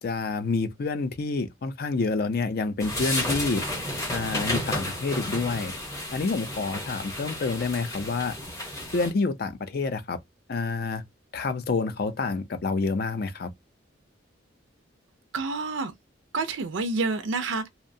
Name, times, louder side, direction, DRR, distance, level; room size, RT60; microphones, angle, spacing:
voice 1, 0.0-3.6 4.1-5.7 6.1-8.4 8.9-10.2 10.5-11.0 11.3-13.5, left 4 dB, 50° left, 0.4 m, -28 dB
sound 1, 2.8-9.1, left 1 dB, 15° left, 0.8 m, -32 dB
voice 2, 15.3-15.9 16.3-17.7, right 3 dB, 75° right, 0.4 m, -28 dB
2.7 x 2.0 x 2.6 m
head